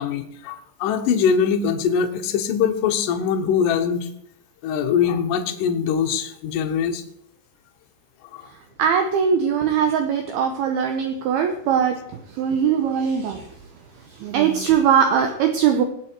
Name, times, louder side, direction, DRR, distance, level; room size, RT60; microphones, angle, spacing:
voice 1, 0.0-4.1 4.6-7.0 8.3-8.4, left 7 dB, 80° left, 4 dB, 1.9 m, -22 dB
voice 2, 8.8-12.0 12.4-13.4 14.2-15.8, right 7 dB, 80° right, 5 dB, 2.2 m, -20 dB
19.5 x 7.5 x 4.6 m, 0.72 s
omnidirectional pair, 5.5 m